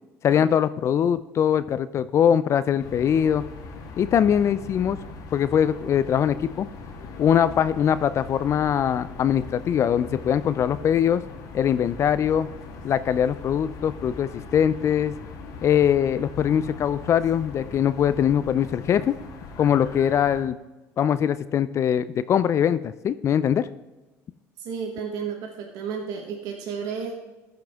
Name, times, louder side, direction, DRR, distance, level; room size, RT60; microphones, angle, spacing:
voice 1, 0.2-3.5 4.0-5.0 5.3-6.7 7.2-11.2 11.5-12.5 12.8-15.2 15.6-19.1 19.6-20.6 21.0-23.7, left 9 dB, 50° left, 15 dB, 0.4 m, -22 dB
sound 1, 2.8-20.4, left 3 dB, 70° left, 1.4 m, -40 dB
voice 2, 24.6-27.1, right 6 dB, 70° right, 1 dB, 1.3 m, -32 dB
13.5 x 5.8 x 3.5 m, 1.1 s
supercardioid pair, 90°, 6 cm